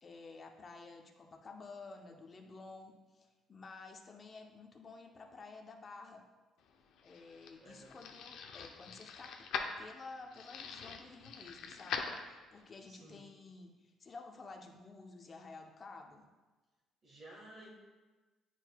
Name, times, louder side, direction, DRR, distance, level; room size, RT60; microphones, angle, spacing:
voice 1, 0.0-6.2 7.0-9.4 9.8-16.3, left 3 dB, 30° left, 2 dB, 0.7 m, -52 dB
sound 1, 6.7-12.7, left 6 dB, 70° left, 0.6 m, -43 dB
voice 2, 7.6-8.0 12.8-13.3 17.0-17.7, right 1 dB, 40° right, -4 dB, 1.4 m, -54 dB
9.7 x 4.5 x 2.3 m, 1.2 s
cardioid pair, 140°, 0 cm